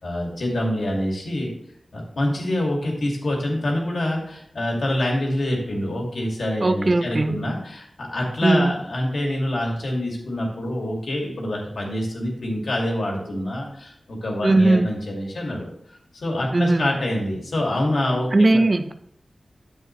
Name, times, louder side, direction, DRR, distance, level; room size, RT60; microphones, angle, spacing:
voice 1, 0.0-1.5 1.9-15.7 16.2-18.6, left 1 dB, 75° left, -1 dB, 2.4 m, -26 dB
voice 2, 6.6-7.4 8.4-8.7 14.4-14.9 16.5-16.9 18.3-18.9, right 2 dB, 45° right, 9 dB, 0.6 m, -18 dB
9.2 x 7.6 x 3.2 m, 0.69 s
wide cardioid pair, 60°, 0 cm